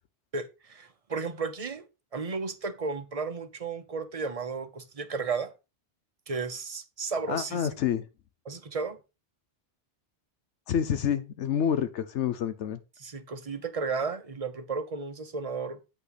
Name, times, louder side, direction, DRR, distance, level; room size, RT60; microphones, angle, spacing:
voice 1, 0.3-1.9 2.1-5.5 6.3-7.8 8.4-9.0 13.0-15.8, right 4 dB, 35° right, 0.8 m, -34 dB
voice 2, 7.3-8.0 10.7-12.8, left 8 dB, 85° left, 1.1 m, -28 dB
8.4 x 5.6 x 4.1 m
omnidirectional pair, 1.2 m